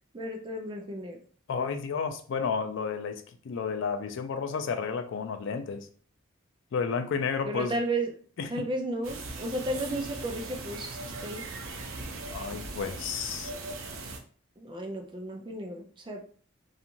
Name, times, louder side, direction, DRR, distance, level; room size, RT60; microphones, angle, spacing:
voice 1, 0.1-1.2 7.5-8.1 8.5-11.5 14.6-16.2, right 1 dB, 25° right, 4 dB, 0.4 m, -33 dB
voice 2, 1.5-5.9 6.7-7.7 8.4-8.5 12.3-13.5, left 5 dB, 65° left, 8 dB, 0.3 m, -31 dB
sound 1, 9.0-14.2, right 3 dB, 75° right, 0.5 m, -39 dB
2.5 x 2.4 x 2.9 m, 0.44 s
head